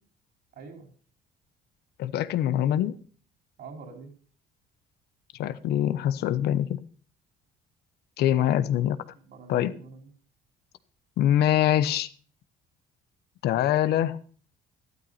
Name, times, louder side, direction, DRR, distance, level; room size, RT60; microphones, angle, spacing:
voice 1, 0.6-0.9 2.5-2.8 3.6-4.1 8.4-8.7 9.3-10.1, right 4 dB, 65° right, 4.5 m, -44 dB
voice 2, 2.0-2.9 5.4-6.8 8.2-9.0 9.5-9.7 11.2-12.1 13.4-14.2, left 11 dB, 75° left, 1.0 m, -24 dB
12.5 x 12.5 x 4.1 m
cardioid pair, 110°, 17 cm